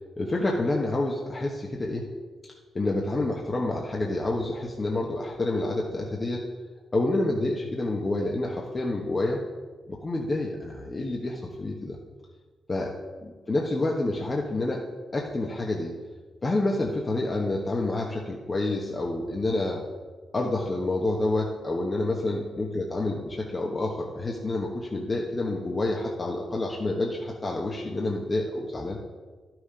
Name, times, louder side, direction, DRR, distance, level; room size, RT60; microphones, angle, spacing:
voice 1, 0.2-2.1 2.7-6.4 6.9-9.4 9.9-12.0 12.7-12.9 13.2-14.8 15.1-15.9 16.4-19.8 20.3-29.0, left 2 dB, 35° left, -1 dB, 1.3 m, -28 dB
11.5 x 6.3 x 5.0 m, 1.4 s
supercardioid pair, 60°, 0 cm